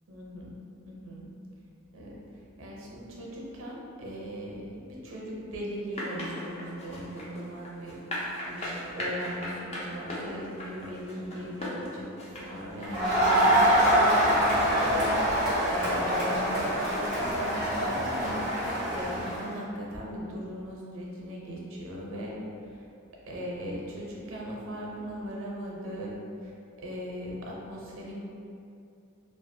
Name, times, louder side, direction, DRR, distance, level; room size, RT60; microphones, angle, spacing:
voice 1, 0.1-0.5 0.8-1.3 1.9-2.2 2.6-22.4 22.7-22.8 23.3-26.1 26.4-26.5 26.8-28.2, equal, 70° right, -3 dB, 0.5 m, -39 dB
sound 1, 5.9-12.9, left 1 dB, 30° left, 0.4 m, -37 dB
Crowd, 12.9-19.4, equal, 70° left, 1.3 m, -25 dB
2.4 x 2.3 x 2.6 m, 2.6 s
head